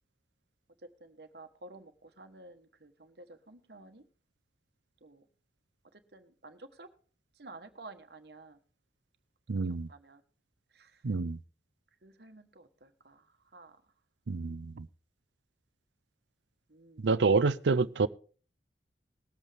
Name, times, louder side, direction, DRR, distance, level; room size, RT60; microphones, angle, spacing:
voice 1, 0.8-4.0 5.0-5.2 6.1-6.9 7.4-8.6 9.5-10.2 10.7-11.0 12.0-13.2 13.5-13.8 16.7-17.1, right 2 dB, 60° right, 1.3 m, -52 dB
voice 2, 9.5-9.9 11.0-11.4 14.3-14.9 17.0-18.1, right 4 dB, 85° right, 0.6 m, -27 dB
19.5 x 8.1 x 3.5 m
head